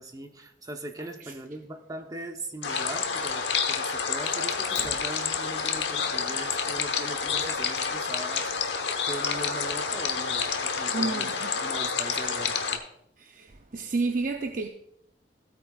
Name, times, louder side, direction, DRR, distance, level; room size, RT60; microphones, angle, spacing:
voice 1, 0.0-8.8 9.1-11.3 11.6-12.8, right 1 dB, 20° right, 0.9 m, -40 dB
voice 2, 1.0-1.4 10.9-11.6 13.2-14.7, right 3 dB, 50° right, 0.6 m, -31 dB
sound 1, 2.6-12.8, left 6 dB, 80° left, 1.1 m, -29 dB
Fire, 4.6-5.6, left 4 dB, 65° left, 2.2 m, -44 dB
16.0 x 8.7 x 2.4 m
head